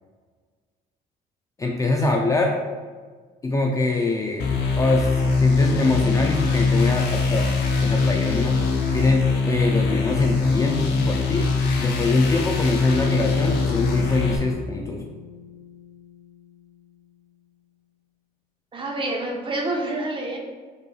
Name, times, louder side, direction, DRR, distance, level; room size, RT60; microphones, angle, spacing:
voice 1, 1.6-2.6 3.4-4.5 4.8-7.5 7.8-8.6 8.9-15.0, left 3 dB, 20° left, 1 dB, 0.3 m, -24 dB
sound 1, 4.4-14.4, left 4 dB, 80° left, 0.7 m, -22 dB
Bass guitar, 12.8-17.2, left 6 dB, 55° left, 0.8 m, -39 dB
voice 2, 18.7-20.4, right 2 dB, 30° right, 0 dB, 0.7 m, -28 dB
5.1 x 3.1 x 2.3 m, 1.5 s
cardioid pair, 110°, 17 cm